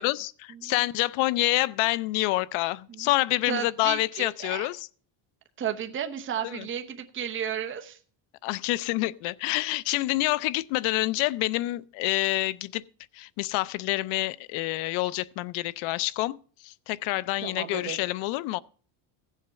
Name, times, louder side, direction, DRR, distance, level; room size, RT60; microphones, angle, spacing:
voice 1, 0.0-4.9 6.4-6.7 8.4-12.8 13.1-16.4 16.6-18.6, left 18 dB, 85° left, 0.7 m, -27 dB
voice 2, 3.4-4.7 5.6-8.0 17.4-18.0, right 9 dB, 25° right, 0.9 m, -33 dB
15.5 x 7.4 x 5.6 m
cardioid pair, 145°, 47 cm